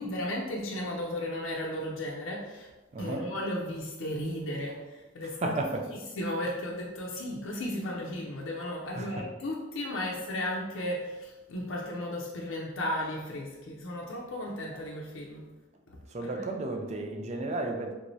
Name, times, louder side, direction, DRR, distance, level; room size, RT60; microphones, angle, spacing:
voice 1, 0.0-2.7 3.0-5.5 6.1-15.5 15.9-16.4, left 1 dB, 75° left, -2 dB, 0.5 m, -35 dB
voice 2, 2.9-3.2 5.4-5.8 8.9-9.2 16.1-17.9, right 2 dB, 35° right, 3 dB, 0.4 m, -33 dB
3.5 x 3.0 x 2.6 m, 1.2 s
head